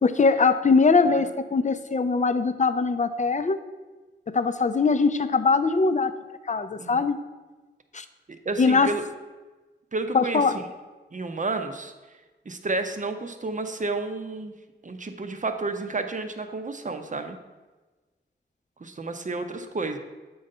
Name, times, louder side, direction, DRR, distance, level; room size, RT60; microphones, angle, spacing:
voice 1, 0.0-3.6 4.3-6.1 6.5-7.2 7.9-8.0 8.6-8.9 10.1-10.6, left 4 dB, 40° left, 11 dB, 0.5 m, -21 dB
voice 2, 8.3-9.0 9.9-10.6 11.1-11.9 12.5-14.5 14.8-17.4 18.8-20.0, right 3 dB, 40° right, 7 dB, 0.7 m, -31 dB
7.8 x 3.9 x 5.4 m, 1.2 s
wide cardioid pair, 60°, 20 cm